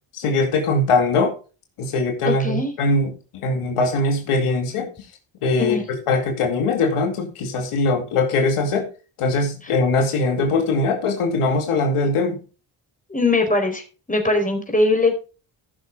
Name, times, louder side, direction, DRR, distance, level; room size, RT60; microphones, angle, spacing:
voice 1, 0.1-1.3 1.8-4.9 5.4-8.9 9.2-12.4, left 3 dB, 90° left, 3 dB, 2.5 m, -21 dB
voice 2, 2.2-2.7 5.6-5.8 13.1-13.8 14.1-15.2, left 2 dB, 15° left, 3 dB, 4.4 m, -20 dB
15.0 x 6.9 x 3.7 m, 0.34 s
cardioid pair, 60°, 50 cm